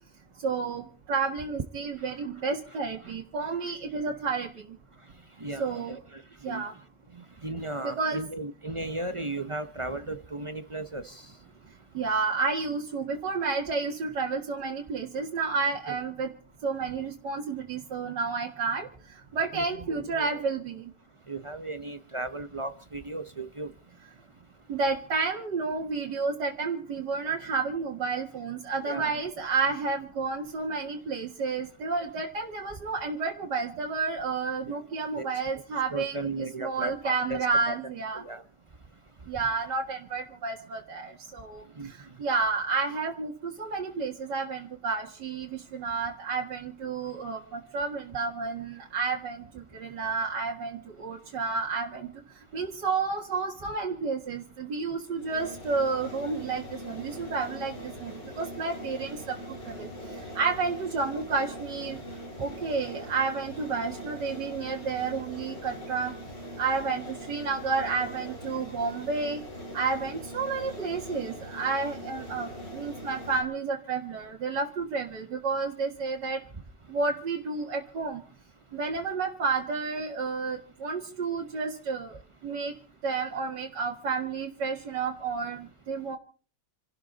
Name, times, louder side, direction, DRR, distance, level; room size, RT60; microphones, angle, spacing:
voice 1, 0.4-4.8 5.6-6.0 6.4-6.7 7.8-8.2 11.9-16.3 16.6-20.9 24.7-36.3 36.6-38.2 39.3-52.1 52.5-59.4 59.6-59.9 60.3-62.0 62.4-66.1 66.6-69.4 69.7-76.4 76.9-78.2 78.7-82.7 83.0-86.2, right 4 dB, 75° right, -2 dB, 2.5 m, -31 dB
voice 2, 5.4-6.6 7.1-11.3 15.9-16.0 19.5-20.4 21.3-23.7 28.9-29.1 34.6-34.8 35.2-35.3 35.5-35.6 35.9-37.4 37.7-37.8 38.1-38.4 41.8-41.9 62.9-63.0, right 2 dB, 40° right, 11 dB, 0.4 m, -36 dB
sound 1, 55.2-73.4, equal, 90° left, 4.9 m, -42 dB
29.0 x 12.5 x 4.0 m, 0.40 s
omnidirectional pair, 1.9 m